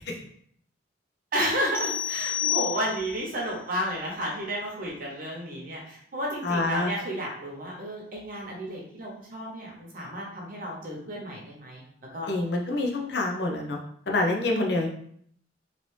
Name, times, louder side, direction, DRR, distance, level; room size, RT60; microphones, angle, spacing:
voice 1, 1.3-11.8 12.1-12.3, equal, 50° right, -2 dB, 0.9 m, -32 dB
sound 1, 1.7-3.3, left 10 dB, 5° right, 1.0 m, -29 dB
voice 2, 6.4-6.9 12.3-13.8 14.1-14.9, left 2 dB, 60° left, 0 dB, 0.7 m, -26 dB
3.1 x 2.6 x 3.2 m, 0.65 s
head